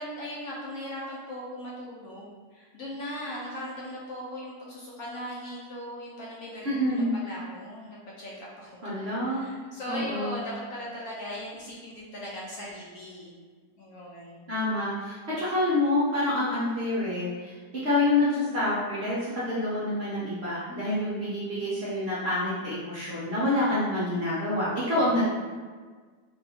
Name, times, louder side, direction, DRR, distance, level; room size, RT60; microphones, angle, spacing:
voice 1, 0.0-13.4 13.8-14.5 20.7-21.1 24.8-25.3, equal, 65° left, -5 dB, 1.0 m, -39 dB
voice 2, 6.6-7.1 8.8-9.4 9.9-10.4 14.5-17.5 17.8-25.3, left 1 dB, 50° right, -10 dB, 0.8 m, -27 dB
2.9 x 2.7 x 3.4 m, 1.5 s
omnidirectional pair, 1.9 m